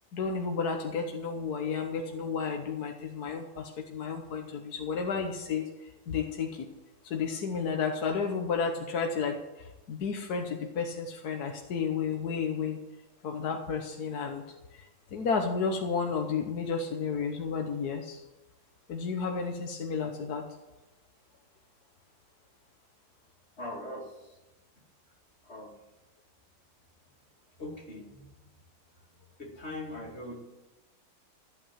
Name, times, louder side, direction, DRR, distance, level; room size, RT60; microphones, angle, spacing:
voice 1, 0.1-6.7 7.0-12.8 13.2-14.4 14.7-18.2 18.9-20.6, left 5 dB, 60° left, 3 dB, 1.5 m, -32 dB
voice 2, 23.6-24.4 25.4-25.8 27.6-28.4 29.4-30.4, left 1 dB, 35° left, 0 dB, 2.5 m, -41 dB
14.0 x 8.9 x 7.3 m, 1.1 s
omnidirectional pair, 2.1 m